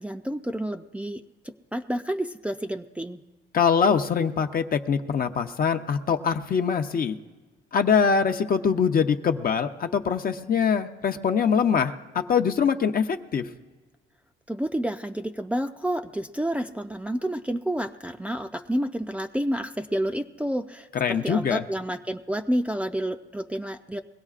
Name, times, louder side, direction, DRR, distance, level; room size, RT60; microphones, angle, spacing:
voice 1, 0.0-3.2 14.5-24.0, right 1 dB, 5° right, 4 dB, 0.5 m, -30 dB
voice 2, 3.5-7.2 7.7-13.5 20.9-21.6, left 6 dB, 45° left, 6 dB, 0.7 m, -23 dB
22.5 x 16.5 x 2.5 m, 1.3 s
cardioid pair, 90°, 20 cm